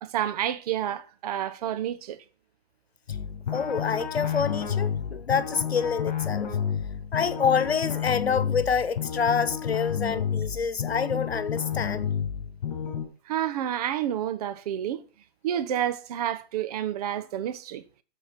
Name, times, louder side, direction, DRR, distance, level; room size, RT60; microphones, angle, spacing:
voice 1, 0.0-2.2 13.3-15.0 15.4-17.8, right 11 dB, 40° right, 1.0 m, -29 dB
sound 1, 3.1-13.0, left 8 dB, 50° left, 4.8 m, -30 dB
voice 2, 3.5-6.5 7.1-12.0, left 6 dB, 90° left, 1.2 m, -27 dB
14.0 x 5.1 x 7.3 m
hypercardioid pair, 140°, 30 cm